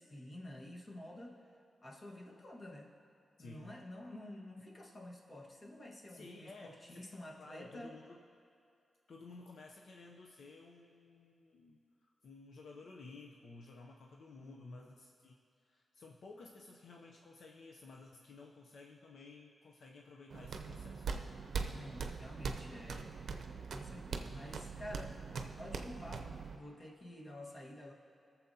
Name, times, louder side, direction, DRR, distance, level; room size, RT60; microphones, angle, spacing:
voice 1, 0.0-1.4 1.8-2.9 3.4-7.9 14.4-14.9 21.7-23.3 23.7-25.2 25.6-27.9, left 1 dB, 35° left, -2 dB, 1.5 m, -50 dB
voice 2, 3.4-3.8 6.1-7.1 7.4-8.2 9.1-21.3, left 3 dB, 75° left, 0 dB, 0.7 m, -54 dB
sound 1, 20.3-26.6, right 5 dB, 80° right, 0.6 m, -42 dB
21.0 x 7.1 x 2.8 m, 2.5 s
wide cardioid pair, 100°, 0 cm